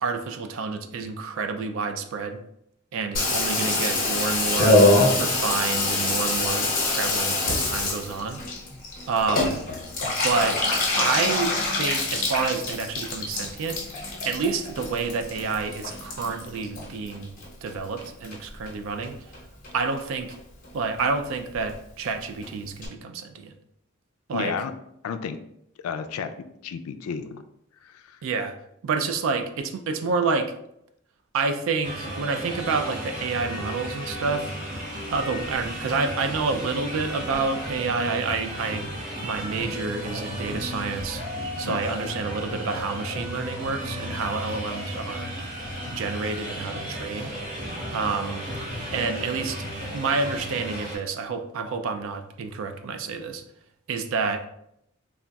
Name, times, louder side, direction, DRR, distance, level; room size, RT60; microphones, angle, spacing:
voice 1, 0.0-2.4 2.9-4.8 5.2-8.4 9.1-9.6 10.0-10.6 11.0-13.8 14.2-17.3 17.6-19.2 19.7-20.4 20.7-23.5 24.3-24.5 28.2-28.6 28.8-30.5 31.3-34.5 35.1-38.9 39.2-41.2 41.6-45.3 45.9-47.3 47.9-48.5 48.9-49.6 49.9-53.4 53.9-54.4, right 4 dB, 65° right, 8 dB, 0.4 m, -28 dB
Water tap faucet / Bathtub (filling or washing), 3.1-17.7 18.0-18.7 19.0-19.1 19.3-19.4 19.6-20.0 20.3-20.4 20.6-20.7 21.0-21.1 21.3-21.4 21.7-21.8 22.0-22.1 22.4-22.5 22.8-22.9, left 2 dB, 45° left, 0.9 m, -25 dB
voice 2, 24.3-24.7 25.0-25.4 25.8-26.3 26.6-27.4 27.8-28.2 41.6-41.8, left 6 dB, 90° left, 10 dB, 0.3 m, -32 dB
sound 1, 31.8-51.0, equal, 40° right, 1.0 m, -34 dB
3.8 x 2.3 x 2.2 m, 0.75 s
head